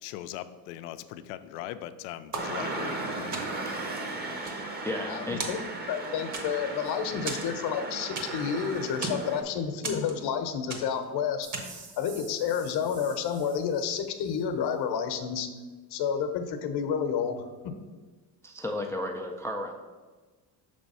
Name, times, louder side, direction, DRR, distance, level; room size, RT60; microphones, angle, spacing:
voice 1, 0.0-3.4, left 12 dB, 90° left, 12 dB, 0.5 m, -40 dB
sound 1, 2.3-3.0 3.3-3.8 4.2-5.1 5.4-6.0 6.3-6.8 7.3-8.5 8.8-9.3 9.8-10.4 10.7-11.1 11.5-11.9, right 3 dB, 40° right, 1.3 m, -37 dB
sound 2, 2.4-9.4, right 2 dB, 20° right, 0.9 m, -36 dB
voice 2, 4.5-5.4 18.4-19.7, left 1 dB, 5° left, 3 dB, 0.3 m, -34 dB
voice 3, 5.1-5.6 5.9-11.5 12.0-15.5 15.9-17.4 17.6-17.7, left 7 dB, 60° left, 7 dB, 0.9 m, -30 dB
sound 3, 11.4-14.4, right 4 dB, 75° right, 1.5 m, -50 dB
6.1 x 3.4 x 5.4 m, 1.3 s
cardioid pair, 110°, 44 cm